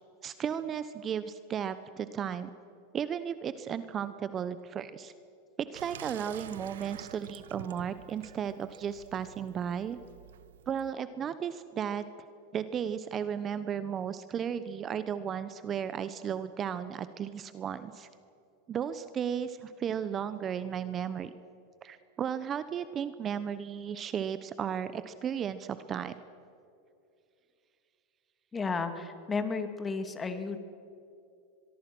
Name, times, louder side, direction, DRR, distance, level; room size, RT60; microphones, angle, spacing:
voice 1, 0.2-2.5 2.9-5.1 5.6-10.0 10.7-12.0 12.5-18.1 18.7-21.3 21.8-26.1, right 8 dB, 30° right, 13 dB, 1.0 m, -34 dB
Water tap faucet / Sink (filling or washing), 5.7-10.9, right 11 dB, 80° right, 0.9 m, -49 dB
voice 2, 28.5-30.6, left 4 dB, 20° left, 8 dB, 2.4 m, -33 dB
24.0 x 22.5 x 6.2 m, 2.5 s
hypercardioid pair, 115°, 0 cm